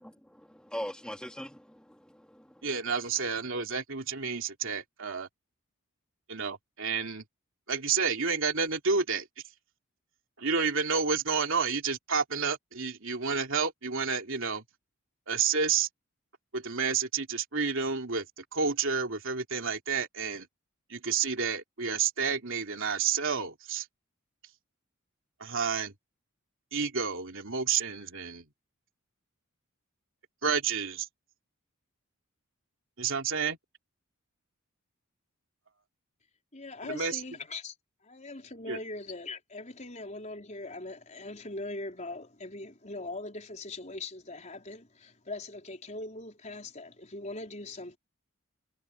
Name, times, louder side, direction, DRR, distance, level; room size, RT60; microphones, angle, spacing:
voice 1, 0.3-2.7, equal, 5° left, 2.8 m, -41 dB
voice 2, 2.6-5.3 6.3-7.2 7.7-9.3 10.4-14.6 15.3-15.9 16.5-20.5 20.9-23.9 25.4-25.9 26.7-28.4 30.4-31.1 33.0-33.6 36.9-37.2 38.7-38.8, right 5 dB, 65° right, 3.2 m, -30 dB
voice 3, 36.5-37.7 38.0-48.0, left 2 dB, 35° left, 4.6 m, -41 dB
head